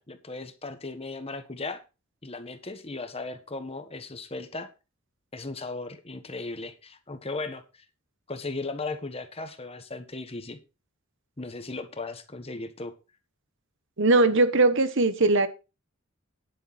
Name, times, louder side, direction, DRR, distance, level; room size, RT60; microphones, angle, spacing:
voice 1, 0.0-1.8 2.2-4.7 5.3-7.8 8.3-10.6 11.4-12.9, left 3 dB, 25° left, 1.3 m, -37 dB
voice 2, 14.0-15.5, right 2 dB, 55° right, 1.1 m, -20 dB
10.5 x 10.0 x 4.1 m
head